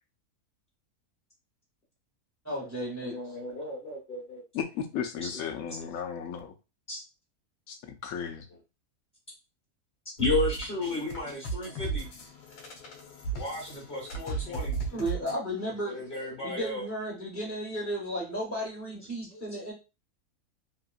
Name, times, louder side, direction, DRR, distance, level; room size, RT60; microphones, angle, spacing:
voice 1, 2.4-3.2 14.9-16.1 16.4-19.7, equal, 15° right, -2 dB, 0.6 m, -34 dB
voice 2, 3.0-4.4 5.2-5.9 6.9-7.0 8.5-8.6 10.2-12.1 13.3-14.7 15.8-16.8 18.9-19.0 19.3-19.4, left 3 dB, 40° left, -4 dB, 1.1 m, -34 dB
voice 3, 4.5-6.5 7.7-7.8 8.0-8.4, left 7 dB, 70° left, 5 dB, 1.0 m, -34 dB
sound 1, 10.2-15.4, right 5 dB, 90° left, 1.3 m, -35 dB
3.0 x 2.6 x 2.4 m, 0.28 s
omnidirectional pair, 1.6 m